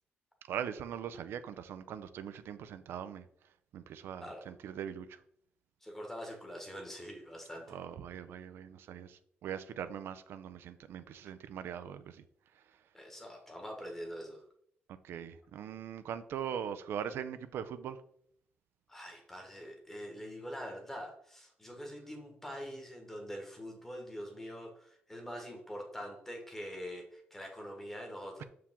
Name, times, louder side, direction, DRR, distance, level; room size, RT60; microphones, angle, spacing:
voice 1, 0.5-3.2 3.7-5.2 7.7-12.2 15.0-18.0, right 8 dB, 75° right, 11 dB, 0.5 m, -41 dB
voice 2, 5.8-7.8 12.9-14.4 18.9-28.4, equal, 10° left, 2 dB, 1.3 m, -44 dB
7.0 x 4.7 x 3.7 m, 0.67 s
wide cardioid pair, 175°, 4 cm